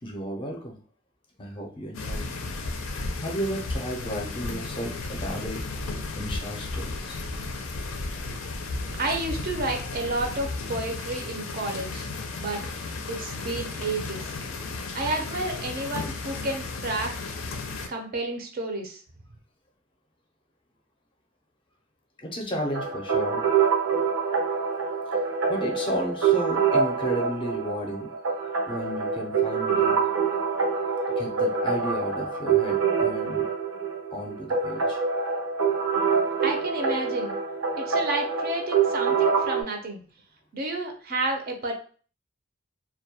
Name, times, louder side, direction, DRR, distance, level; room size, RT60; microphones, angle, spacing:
voice 1, 0.0-0.8 1.4-2.3 3.2-5.6 6.2-7.2 22.2-23.4 25.5-28.1 28.7-30.0 31.2-33.5 34.1-35.0, equal, 25° left, 1 dB, 0.5 m, -33 dB
sound 1, 1.9-17.9, left 3 dB, 85° left, 0.4 m, -34 dB
voice 2, 8.9-12.1 12.4-12.6 13.1-14.3 14.9-17.1 17.9-19.0 36.4-37.4 37.7-40.0 40.5-41.7, right 2 dB, 50° right, 3 dB, 0.5 m, -30 dB
sound 2, 22.7-39.6, right 6 dB, 90° right, 0.6 m, -25 dB
2.2 x 2.1 x 2.7 m, 0.42 s
head